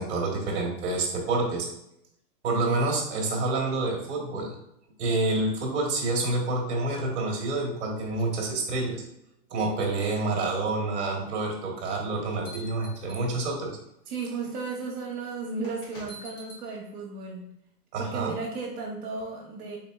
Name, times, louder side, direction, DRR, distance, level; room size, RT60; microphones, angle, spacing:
voice 1, 0.0-1.7 2.4-4.5 5.0-9.0 9.5-13.7 17.9-18.3, right 2 dB, 45° right, 0 dB, 1.2 m, -28 dB
sound 1, 11.9-13.7 14.4-14.6 15.6-16.6, equal, 35° left, 0.6 m, -47 dB
voice 2, 14.1-17.4 18.0-19.8, right 4 dB, 65° right, -2 dB, 0.9 m, -34 dB
4.1 x 3.6 x 2.3 m, 0.79 s
supercardioid pair, 180°, 48 cm